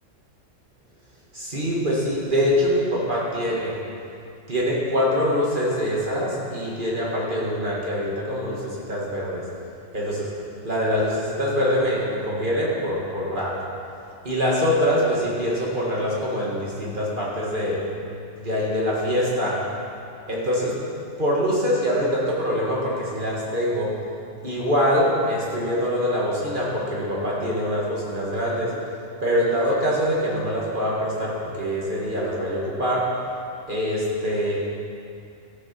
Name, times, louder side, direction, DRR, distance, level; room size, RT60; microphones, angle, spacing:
voice 1, 1.3-3.8 4.5-9.5 9.9-10.3 10.6-13.5 14.2-17.8 18.4-19.6 20.3-20.8 21.2-23.9 24.4-28.7 29.2-33.0 33.7-34.5, equal, 40° right, -5 dB, 2.1 m, -24 dB
13.5 x 6.9 x 6.0 m, 2.6 s
omnidirectional pair, 1.3 m